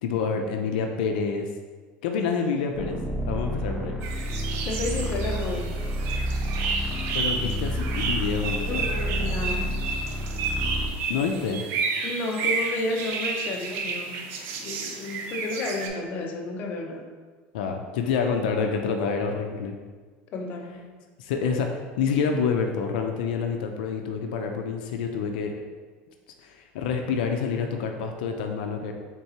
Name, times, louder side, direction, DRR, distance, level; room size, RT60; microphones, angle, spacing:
voice 1, 0.0-1.5 2.0-3.0 3.3-4.0 7.1-8.9 11.1-11.6 17.5-19.8 21.2-25.5 26.4-28.9, left 5 dB, 85° left, 4 dB, 0.4 m, -27 dB
sound 1, 2.7-11.0, equal, 10° right, 0.5 m, -30 dB
sound 2, 4.0-15.9, right 4 dB, 55° right, 0.6 m, -31 dB
voice 2, 4.6-5.8 8.6-9.8 12.0-14.3 14.6-17.1 20.3-20.9, left 2 dB, 40° left, 2 dB, 0.6 m, -32 dB
4.5 x 3.6 x 2.8 m, 1.5 s
supercardioid pair, 140°, 5 cm